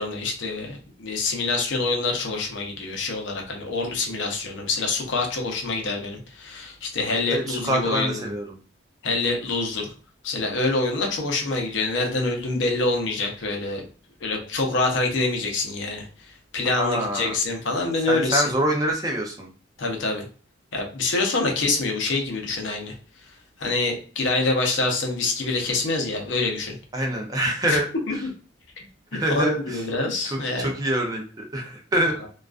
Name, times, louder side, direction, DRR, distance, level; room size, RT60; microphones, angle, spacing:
voice 1, 0.0-8.3 9.0-9.9 10.2-13.8 14.2-16.1 16.5-18.5 19.8-20.3 20.7-22.9 23.6-26.8 27.7-27.8 28.1-28.2 29.3-30.7, left 3 dB, 75° left, 2 dB, 0.6 m, -26 dB
voice 2, 7.3-8.6 16.7-17.3 18.1-19.5 26.9-28.2 29.1-29.8 30.2-32.1, right 1 dB, 20° right, 1 dB, 0.4 m, -25 dB
2.3 x 2.3 x 2.3 m, 0.40 s
head